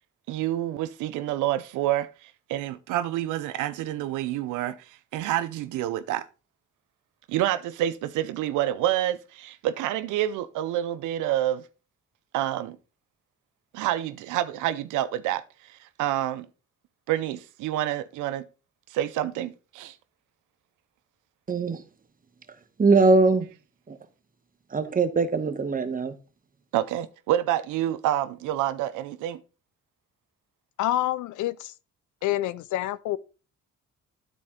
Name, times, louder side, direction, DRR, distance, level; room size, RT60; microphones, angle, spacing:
voice 1, 0.3-6.3 7.3-11.6 12.3-12.8 13.7-16.5 17.1-18.4 18.9-20.0 26.7-29.4, right 13 dB, 90° right, 0.5 m, -28 dB
voice 2, 21.5-21.8 22.8-23.5 23.9-24.0 24.7-26.1, right 3 dB, 30° right, 1.1 m, -21 dB
voice 3, 30.8-31.7 32.2-33.2, left 14 dB, 75° left, 0.5 m, -27 dB
12.0 x 4.3 x 3.7 m
cardioid pair, 90°, 30 cm